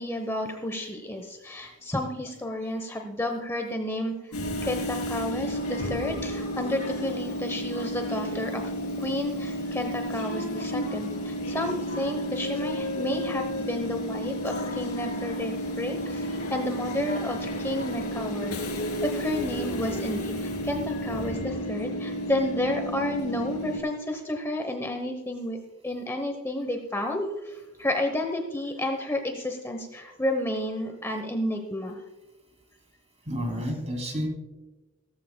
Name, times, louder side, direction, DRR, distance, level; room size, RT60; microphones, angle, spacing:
voice 1, 0.0-8.6 9.0-18.6 19.0-25.6 25.8-32.0 34.1-34.3, left 1 dB, 10° left, 4 dB, 0.8 m, -31 dB
Train / Subway metro underground, 4.3-23.8, equal, 90° left, 2.9 m, -32 dB
voice 2, 33.3-34.3, equal, 30° right, 3 dB, 2.8 m, -30 dB
17.0 x 14.0 x 2.2 m, 1.1 s
head